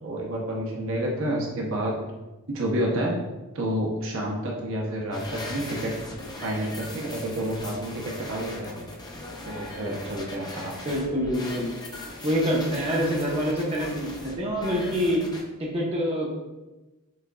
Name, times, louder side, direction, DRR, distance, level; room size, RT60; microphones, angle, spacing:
voice 1, 0.0-1.9 2.5-3.2 3.5-5.9 6.4-8.7 9.5-10.9, right 1 dB, 60° right, -2 dB, 0.9 m, -29 dB
sound 1, 5.1-15.4, left 2 dB, 20° left, 0.6 m, -39 dB
voice 2, 10.8-11.7 12.2-15.2 15.6-16.3, equal, 25° right, -4 dB, 0.9 m, -26 dB
6.4 x 3.6 x 2.3 m, 1.1 s
head